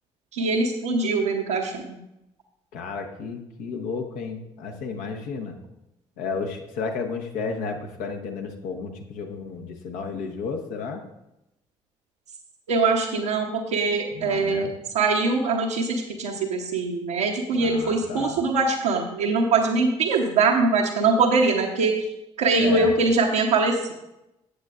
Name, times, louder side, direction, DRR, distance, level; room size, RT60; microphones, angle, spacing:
voice 1, 0.3-2.0 12.7-21.9 22.4-23.9, right 3 dB, 75° right, -4 dB, 0.8 m, -22 dB
voice 2, 2.7-5.6 6.2-11.0 14.1-14.7 17.5-18.4 22.6-22.9, left 5 dB, 65° left, 4 dB, 1.1 m, -32 dB
14.5 x 8.1 x 2.4 m, 0.90 s
figure-of-eight pair, 45°, 15 cm